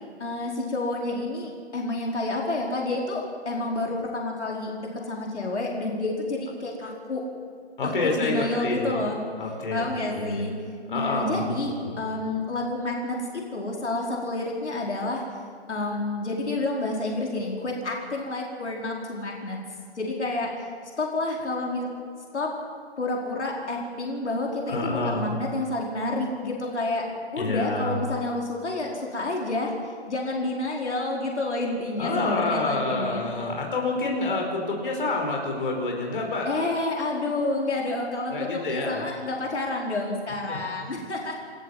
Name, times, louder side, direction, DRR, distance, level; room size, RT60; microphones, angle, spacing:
voice 1, 0.2-7.2 7.8-7.9 8.2-9.2 9.7-10.5 10.9-15.2 15.7-19.6 19.9-20.5 21.0-21.9 22.3-22.5 23.0-27.1 27.3-29.7 30.1-33.3 36.4-41.4, left 2 dB, 85° left, -1 dB, 4.8 m, -29 dB
voice 2, 7.8-9.0 9.4-10.5 10.9-12.0 24.7-25.4 27.4-28.0 32.0-36.5 38.3-39.0 40.5-40.6, left 2 dB, 50° left, 0 dB, 5.3 m, -28 dB
28.5 x 14.0 x 7.5 m, 2.3 s
hypercardioid pair, 165°, 33 cm